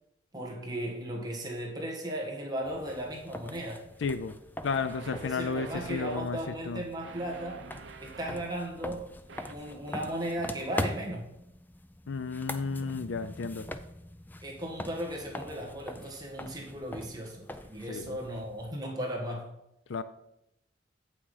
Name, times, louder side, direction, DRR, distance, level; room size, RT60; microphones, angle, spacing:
voice 1, 0.3-3.8 5.0-7.6 8.0-9.1 9.5-11.2 14.4-19.5, right 1 dB, 20° right, -1 dB, 1.6 m, -36 dB
sound 1, 2.6-18.7, left 1 dB, 10° left, 0.3 m, -42 dB
sound 2, 3.9-4.0 4.7-6.2 7.0-8.5 9.3-9.6, right 4 dB, 70° right, 0.7 m, -47 dB
voice 2, 4.0-4.4 4.6-6.4 6.7-6.8 12.1-13.7 17.9-18.2 19.9-20.0, left 4 dB, 75° left, 13 dB, 0.4 m, -32 dB
7.9 x 6.0 x 4.9 m, 0.83 s
head